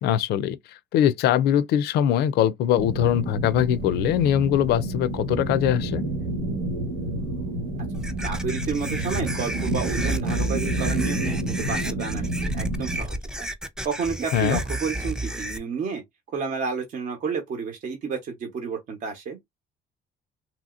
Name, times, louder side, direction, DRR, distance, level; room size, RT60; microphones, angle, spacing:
voice 1, 0.0-6.0 14.3-14.6, left 10 dB, 75° left, 0.4 m, -22 dB
sound 1, 2.8-13.0, right 1 dB, 75° right, 1.3 m, -29 dB
sound 2, 7.9-15.6, right 1 dB, 5° right, 0.4 m, -31 dB
voice 2, 8.2-13.5 13.8-16.0 16.3-19.4, right 5 dB, 50° right, 0.9 m, -31 dB
2.9 x 2.7 x 2.4 m
cardioid pair, 110°, 17 cm